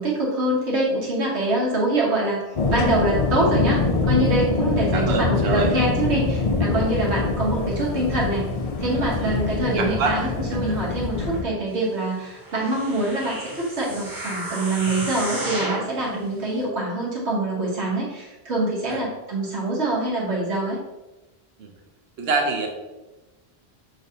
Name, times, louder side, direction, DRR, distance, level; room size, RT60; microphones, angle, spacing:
voice 1, 0.0-2.4 2.7-8.4 8.8-20.8, right 2 dB, 90° right, -4 dB, 1.4 m, -25 dB
sound 1, 2.6-11.4, left 4 dB, 50° left, 0.5 m, -24 dB
voice 2, 4.9-5.8 9.2-9.4 9.7-10.8 18.9-19.0 21.6-21.7 22.2-22.7, right 4 dB, 70° right, 2 dB, 1.0 m, -26 dB
sound 2, 12.4-15.9 16.5-16.6, right 1 dB, 50° right, 1.2 m, -32 dB
6.1 x 3.2 x 2.7 m, 1.1 s
omnidirectional pair, 1.1 m